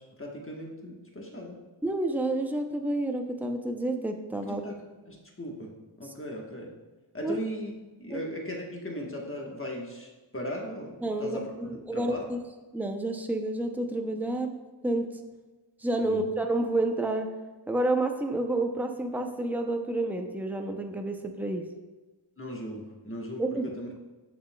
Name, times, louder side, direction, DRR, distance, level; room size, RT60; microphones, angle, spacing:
voice 1, 0.0-1.6 4.4-6.7 7.1-7.7 8.0-12.2 16.0-16.2 22.4-23.9, equal, 25° left, -1 dB, 1.2 m, -38 dB
voice 2, 1.8-4.6 7.2-7.4 8.1-8.2 11.0-12.4 12.7-14.5 14.8-15.1 15.8-17.3 17.7-21.7 23.4-23.6, right 2 dB, 5° right, 4 dB, 0.5 m, -29 dB
7.0 x 6.4 x 2.2 m, 1.2 s
wide cardioid pair, 45°, 49 cm